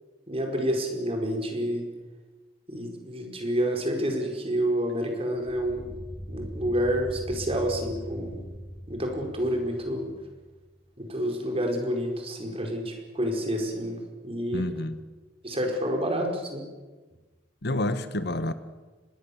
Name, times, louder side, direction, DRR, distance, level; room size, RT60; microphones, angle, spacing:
voice 1, 0.3-1.8 2.7-5.8 6.3-8.4 8.9-10.1 11.0-14.0 14.2-14.6 15.4-16.6, equal, 30° right, 3 dB, 5.0 m, -28 dB
sound 1, 5.5-10.6, equal, 30° left, 2.2 m, -40 dB
voice 2, 14.5-15.0 17.6-18.5, left 1 dB, 60° left, 12 dB, 1.3 m, -28 dB
25.0 x 20.5 x 7.2 m, 1.3 s
head